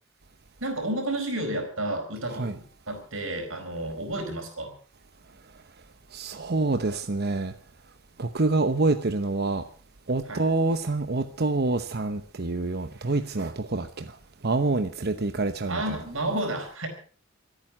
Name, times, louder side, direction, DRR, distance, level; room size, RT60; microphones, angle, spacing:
voice 1, 0.6-2.5 2.9-4.7 10.3-10.4 15.7-16.9, right 1 dB, 85° right, 4.6 m, -31 dB
voice 2, 6.1-7.5 8.2-9.7 10.1-14.2 14.4-16.0, right 2 dB, 55° right, 1.0 m, -27 dB
26.5 x 9.1 x 6.0 m
head